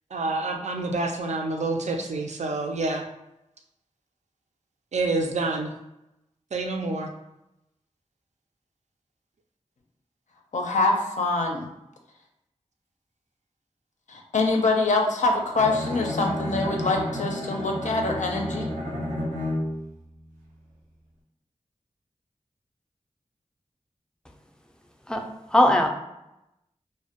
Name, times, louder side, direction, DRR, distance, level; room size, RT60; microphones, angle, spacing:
voice 1, 0.1-3.0 4.9-5.7 6.5-7.1, right 2 dB, 65° right, 4 dB, 0.4 m, -27 dB
voice 2, 10.5-11.7 14.1-18.7, left 3 dB, 75° left, 1 dB, 0.4 m, -24 dB
Bowed string instrument, 15.5-19.9, left 1 dB, 85° right, 0.7 m, -30 dB
voice 3, 25.1-25.9, left 1 dB, 5° left, 2 dB, 0.4 m, -20 dB
2.1 x 2.1 x 2.7 m, 0.89 s
cardioid pair, 45°, 13 cm